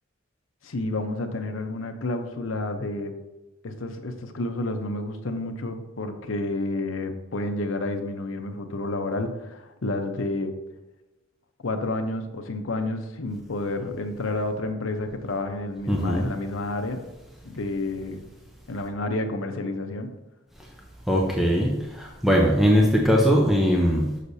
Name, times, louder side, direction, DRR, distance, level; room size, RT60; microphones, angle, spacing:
voice 1, 0.6-3.1 3.6-10.5 11.6-17.0 17.4-18.2 18.7-20.1, left 2 dB, 85° left, 6 dB, 0.8 m, -30 dB
voice 2, 15.9-16.3 21.1-24.2, equal, ahead, -2 dB, 0.7 m, -20 dB
6.5 x 6.5 x 2.7 m, 1.1 s
head